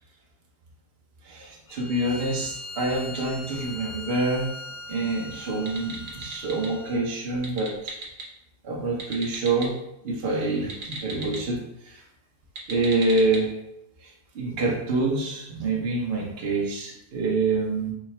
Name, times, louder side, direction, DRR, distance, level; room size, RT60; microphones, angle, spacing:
voice 1, 1.2-4.5 4.9-8.0 8.6-9.7 10.0-12.0 12.7-13.6 14.0-17.9, right 2 dB, 45° right, -2 dB, 0.8 m, -26 dB
Bowed string instrument, 1.7-7.0, left 2 dB, 65° left, 0.9 m, -40 dB
sound 1, 5.6-6.7 7.3-8.3 8.9-9.7 10.6-11.4 12.4-13.4, right 3 dB, 90° right, 0.4 m, -37 dB
4.8 x 2.2 x 4.2 m, 0.84 s
omnidirectional pair, 2.0 m